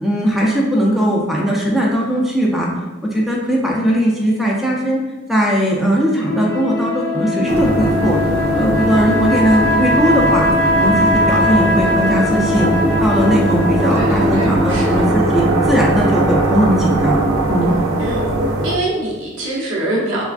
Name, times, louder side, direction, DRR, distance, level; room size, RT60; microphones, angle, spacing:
voice 1, 0.0-2.7 3.0-5.0 5.3-8.2 8.5-10.5 10.8-12.7 13.0-17.2 17.5-17.8, equal, ahead, -3 dB, 0.3 m, -18 dB
sound 1, 6.2-15.9, left 1 dB, 80° left, 0.6 m, -20 dB
sound 2, 7.5-18.8, right 2 dB, 90° right, 0.4 m, -20 dB
voice 2, 13.9-15.1 18.0-18.3 18.6-20.2, right 1 dB, 70° right, -4 dB, 0.8 m, -24 dB
3.3 x 2.2 x 2.4 m, 1.2 s
head